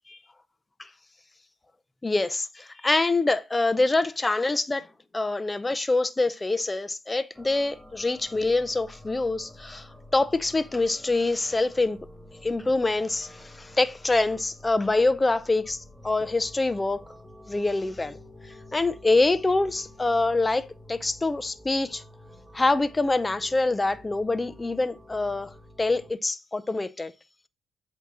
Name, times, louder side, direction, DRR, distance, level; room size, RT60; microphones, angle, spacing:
voice 1, 2.0-4.9 5.1-12.0 12.4-17.0 17.5-18.2 18.7-22.0 22.5-25.5 25.8-27.1, left 2 dB, 20° left, 0.6 m, -25 dB
sound 1, 7.3-26.1, left 1 dB, ahead, 1.0 m, -49 dB
8.2 x 2.9 x 6.0 m
cardioid pair, 90°, 0 cm